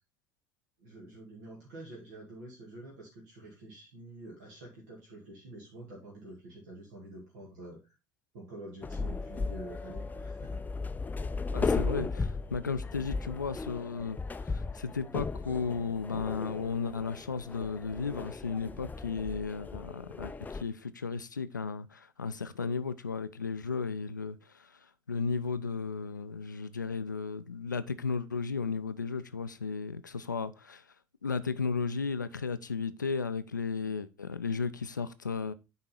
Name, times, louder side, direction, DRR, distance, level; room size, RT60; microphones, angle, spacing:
voice 1, 0.8-8.0 8.3-10.7, right 1 dB, 65° right, 2.0 m, -47 dB
sound 1, 8.8-20.6, left 4 dB, 20° left, 0.5 m, -36 dB
voice 2, 11.5-24.7 25.1-30.8 31.2-35.5, left 5 dB, 85° left, 0.4 m, -34 dB
9.4 x 3.8 x 4.3 m
figure-of-eight pair, 60°, 10 cm